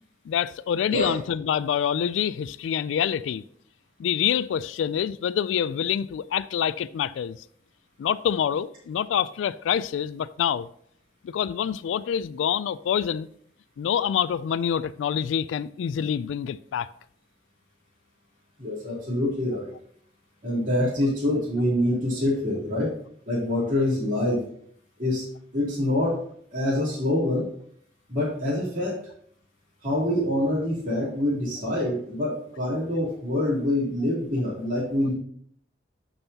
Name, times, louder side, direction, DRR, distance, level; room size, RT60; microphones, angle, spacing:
voice 1, 0.3-3.4 4.0-7.4 8.0-10.7 11.2-13.3 13.8-16.9, left 8 dB, 90° left, 0.3 m, -26 dB
voice 2, 18.6-19.7 20.4-23.0 23.3-24.4 25.0-25.2 25.5-26.2 26.5-27.5 28.1-29.0 29.8-35.1, left 1 dB, 45° right, 3.2 m, -25 dB
12.5 x 5.4 x 2.8 m
head